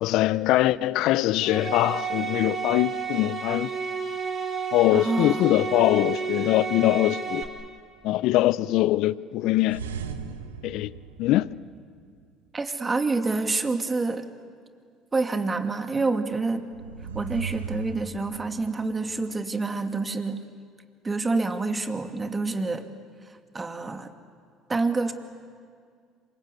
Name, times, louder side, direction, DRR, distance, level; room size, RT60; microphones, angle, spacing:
voice 1, 0.0-3.7 4.7-7.5 8.0-9.8 10.6-10.9 11.2-11.5, left 16 dB, 65° left, 0.6 m, -22 dB
sound 1, 1.4-7.4, right 6 dB, 45° right, 5.1 m, -31 dB
voice 2, 4.9-5.4 12.5-14.3 15.1-16.7 17.1-20.5 21.0-22.9 23.5-24.1 24.7-25.1, right 3 dB, 25° right, 2.3 m, -27 dB
sound 2, 9.6-12.1 16.6-18.9, right 6 dB, 90° right, 1.2 m, -37 dB
27.0 x 25.0 x 8.2 m
hypercardioid pair, 65°, 0 cm